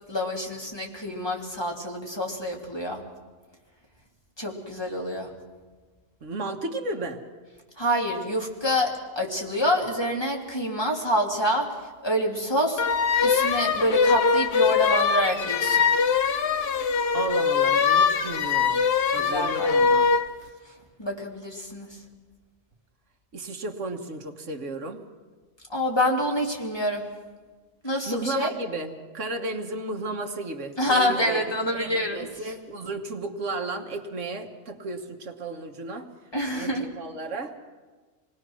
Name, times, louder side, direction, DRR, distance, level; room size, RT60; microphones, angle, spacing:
voice 1, 0.1-3.0 4.4-5.3 7.8-15.8 19.1-19.9 20.6-20.7 21.0-22.0 25.7-27.1 27.8-28.5 30.8-32.5 36.3-36.9, equal, 20° left, -1 dB, 2.6 m, -27 dB
voice 2, 6.2-7.2 17.1-18.8 19.1-20.1 23.3-25.0 28.1-31.4 31.7-36.1 36.5-37.5, right 2 dB, 85° right, 5 dB, 1.8 m, -33 dB
sound 1, 12.8-20.3, left 5 dB, 60° left, 1.0 m, -22 dB
27.0 x 19.5 x 6.2 m, 1.4 s
omnidirectional pair, 1.2 m